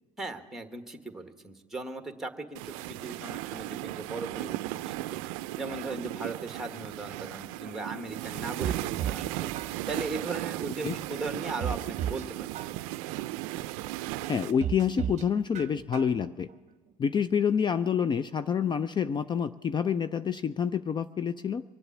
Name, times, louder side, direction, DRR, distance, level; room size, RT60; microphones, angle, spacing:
voice 1, 0.2-5.2 5.6-9.5 9.9-12.5, right 3 dB, ahead, 6 dB, 1.4 m, -38 dB
sound 1, 2.6-14.5, right 16 dB, 85° right, 0.4 m, -36 dB
sound 2, 8.2-9.3 9.5-10.2 10.7-10.8 11.2-12.3 12.5-13.2 13.7-13.8 14.2-15.3 15.5-16.2 16.5-16.6, right 9 dB, 45° right, 0.8 m, -35 dB
voice 2, 14.3-16.5 17.0-21.6, left 7 dB, 25° left, 13 dB, 0.4 m, -27 dB
23.5 x 8.0 x 7.2 m, 1.5 s
supercardioid pair, 100°, 17 cm